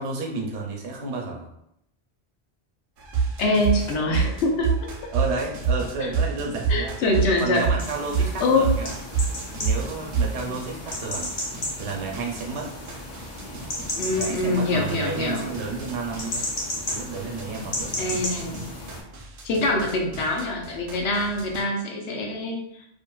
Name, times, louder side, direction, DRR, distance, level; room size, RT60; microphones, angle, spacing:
voice 1, 0.0-1.5 5.1-7.0 7.4-8.9 9.5-11.3 11.8-12.7 14.1-16.5 16.9-18.2, right 4 dB, 90° right, 0 dB, 0.9 m, -31 dB
sound 1, 3.0-21.6, right 5 dB, 60° right, 0.6 m, -29 dB
voice 2, 3.4-4.7 6.0-6.1 6.7-7.7 8.4-8.6 13.9-15.5 18.0-18.6 19.4-22.6, left 2 dB, 85° left, 1 dB, 0.9 m, -24 dB
sound 2, 7.8-19.0, left 1 dB, 40° left, 0.5 m, -34 dB
2.5 x 2.5 x 2.2 m, 0.77 s
omnidirectional pair, 1.1 m